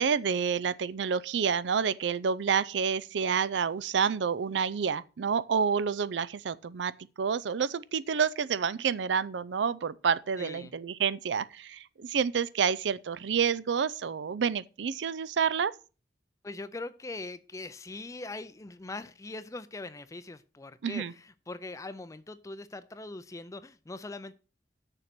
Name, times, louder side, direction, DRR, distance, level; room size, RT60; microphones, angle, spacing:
voice 1, 0.0-6.9 7.2-15.7 20.8-21.1, right 6 dB, 80° right, 0.5 m, -29 dB
voice 2, 10.4-10.7 16.4-24.3, left 2 dB, 20° left, 0.4 m, -41 dB
8.6 x 6.8 x 6.0 m
head